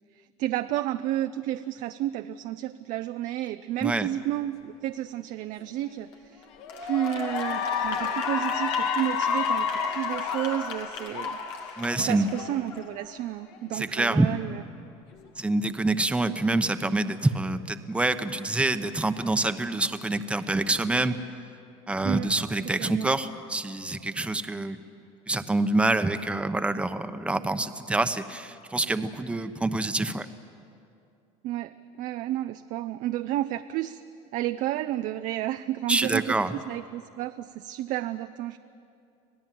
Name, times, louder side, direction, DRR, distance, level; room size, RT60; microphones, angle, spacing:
voice 1, 0.4-6.5 6.8-14.6 22.0-22.3 22.8-23.1 31.4-34.0 34.3-38.6, right 13 dB, 60° right, 9 dB, 0.6 m, -31 dB
Cheering / Applause, 5.9-6.1 6.6-13.1, left 6 dB, 90° left, 2.1 m, -30 dB
voice 2, 11.8-12.3 13.7-14.3 15.4-21.2 21.9-24.8 25.3-30.3 35.9-36.6, right 2 dB, 10° right, 9 dB, 0.9 m, -26 dB
26.0 x 17.5 x 7.7 m, 2.6 s
supercardioid pair, 110°, 15 cm